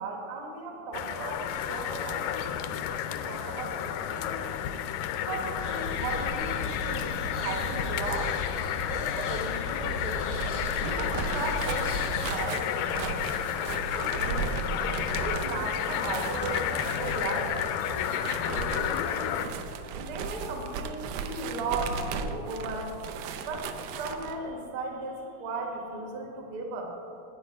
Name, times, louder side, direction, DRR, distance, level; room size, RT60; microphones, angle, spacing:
voice 1, 0.0-4.4 5.1-8.3 8.9-10.3 10.8-14.5 15.0-17.6 17.9-19.6 20.0-23.0 23.4-23.7 24.0-26.9, right 3 dB, 60° right, 2 dB, 1.4 m, -37 dB
sound 1, 0.9-19.5, left 10 dB, 85° left, 1.9 m, -31 dB
sound 2, 5.5-12.4, left 2 dB, 65° left, 0.8 m, -37 dB
sound 3, 10.2-24.4, right 6 dB, 80° right, 1.9 m, -36 dB
12.0 x 8.7 x 5.0 m, 2.7 s
omnidirectional pair, 4.3 m